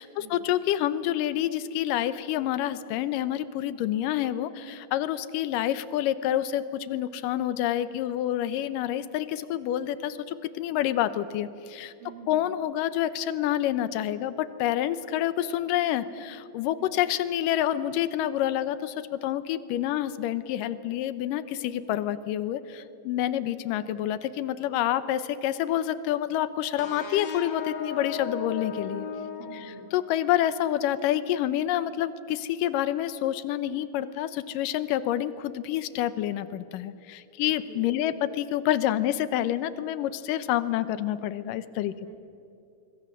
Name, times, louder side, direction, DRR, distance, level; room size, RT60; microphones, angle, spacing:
voice 1, 0.0-11.9 12.3-29.1 29.5-41.9, left 12 dB, 85° left, 14 dB, 2.5 m, -28 dB
voice 2, 12.0-12.5 16.7-16.9 23.4-23.5 29.4-29.9 37.4-37.9 42.1-42.3, right 6 dB, 45° right, 4 dB, 2.9 m, -47 dB
sound 1, 26.8-30.3, left 6 dB, 55° left, 3.2 m, -36 dB
26.0 x 22.5 x 7.4 m, 2.6 s
omnidirectional pair, 3.9 m